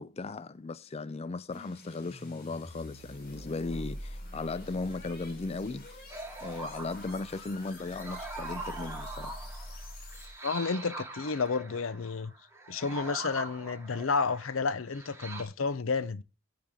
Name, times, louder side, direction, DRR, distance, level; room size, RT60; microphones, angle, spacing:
voice 1, 0.0-6.0 6.4-9.4, left 3 dB, 30° left, 0.4 m, -37 dB
sound 1, 1.5-10.6, equal, 50° left, 4.5 m, -45 dB
sound 2, 6.1-15.4, right 3 dB, 15° right, 2.1 m, -43 dB
voice 2, 10.4-12.3 12.7-16.2, left 4 dB, 85° left, 0.7 m, -31 dB
10.5 x 8.5 x 3.7 m
head